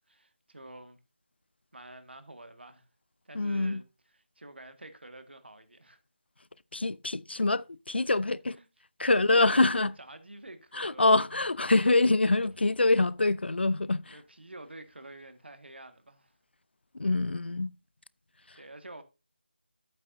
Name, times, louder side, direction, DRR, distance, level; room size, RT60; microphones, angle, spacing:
voice 1, 0.1-1.0 1.7-2.9 3.3-6.0 8.1-8.2 8.6-8.7 9.0-11.1 14.1-16.3 18.5-19.0, right 2 dB, 70° right, 1.8 m, -48 dB
voice 2, 3.3-3.8 6.7-8.6 9.0-9.9 10.7-14.2 16.9-17.7 18.5-18.6, left 2 dB, 70° left, 0.5 m, -25 dB
11.0 x 8.9 x 2.7 m
figure-of-eight pair, 165°, 6 cm